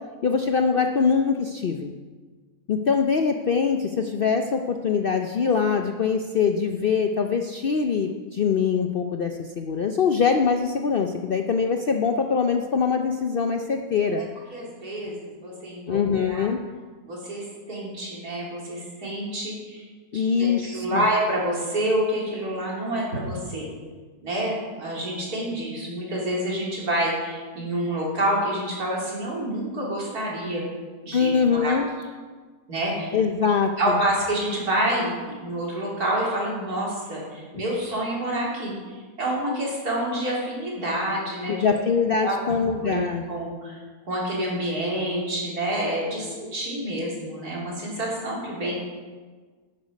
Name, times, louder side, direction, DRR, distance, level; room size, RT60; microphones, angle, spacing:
voice 1, 0.2-1.9 2.7-14.2 15.9-16.6 20.1-21.0 31.1-31.9 33.1-33.7 37.5-37.6 41.5-43.2, left 6 dB, 60° left, 5 dB, 0.6 m, -23 dB
voice 2, 14.5-16.5 17.1-19.9 20.1-23.7 24.2-30.7 31.0-31.8 32.7-33.1 33.8-41.8 42.2-43.8 44.1-48.8, right 1 dB, 75° right, -4 dB, 3.6 m, -28 dB
11.0 x 9.5 x 5.2 m, 1.4 s
omnidirectional pair, 1.6 m